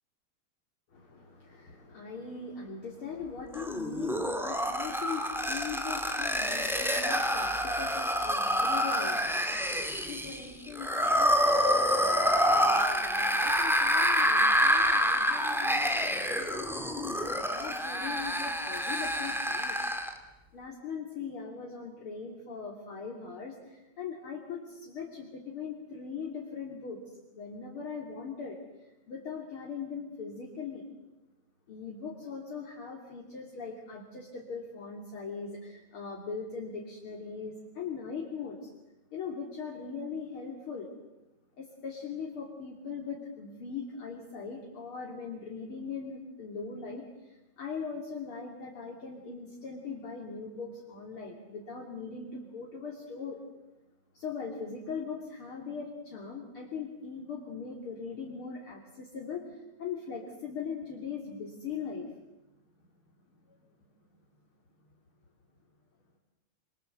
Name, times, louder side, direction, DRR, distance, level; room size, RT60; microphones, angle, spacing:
voice 1, 0.9-19.8 20.5-27.0 27.3-28.6 29.1-30.8 31.7-38.7 39.1-40.9 41.6-53.4 54.1-62.1, left 5 dB, 45° left, 0 dB, 3.6 m, -40 dB
sound 1, 3.5-20.2, equal, ahead, 2.0 m, -27 dB
27.0 x 25.5 x 7.9 m, 0.97 s
omnidirectional pair, 3.4 m